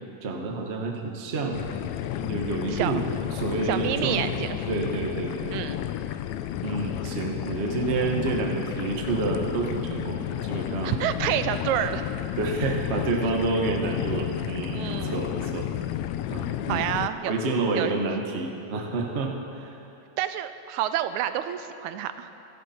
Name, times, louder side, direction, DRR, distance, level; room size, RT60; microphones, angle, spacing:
voice 1, 0.2-1.8 2.2-3.0 3.3-4.4 4.7-5.5 6.6-11.0 12.4-15.7 16.3-16.8 17.3-19.8, right 3 dB, 45° right, 1 dB, 0.8 m, -29 dB
sound 1, 1.5-17.1, left 12 dB, 80° left, 1.9 m, -32 dB
voice 2, 2.7-3.0 3.7-4.6 5.5-5.8 10.8-12.0 14.7-15.2 16.7-17.3 17.7-17.9 20.2-22.3, right 11 dB, 85° right, 11 dB, 2.0 m, -28 dB
25.0 x 12.0 x 4.4 m, 2.8 s
omnidirectional pair, 3.3 m